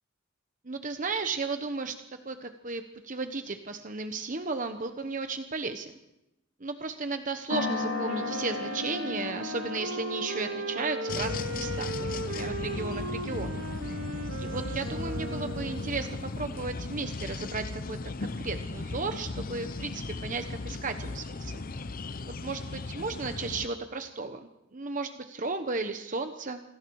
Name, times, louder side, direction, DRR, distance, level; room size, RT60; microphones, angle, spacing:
voice 1, 0.6-5.9 6.6-13.6 14.4-21.6 22.4-26.6, right 3 dB, 40° right, 7 dB, 1.1 m, -34 dB
sound 1, 7.5-16.0, left 4 dB, 60° left, 2.7 m, -38 dB
Wind instrument woodwind instrument, 7.7-16.1, right 2 dB, 80° right, 1.2 m, -37 dB
sound 2, 11.1-23.7, left 3 dB, 45° left, 0.7 m, -36 dB
28.0 x 21.0 x 4.8 m, 0.91 s
head